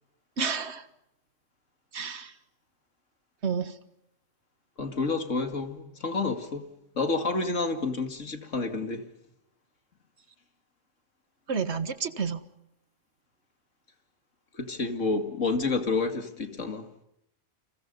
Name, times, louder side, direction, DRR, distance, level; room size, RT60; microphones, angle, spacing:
voice 1, 0.4-0.9 1.9-2.3 3.4-3.8 11.5-12.4, right 5 dB, 65° right, 1.7 m, -30 dB
voice 2, 4.8-6.7 6.9-9.1 14.5-16.9, left 3 dB, 85° left, 2.7 m, -29 dB
29.5 x 27.0 x 5.5 m
omnidirectional pair, 1.3 m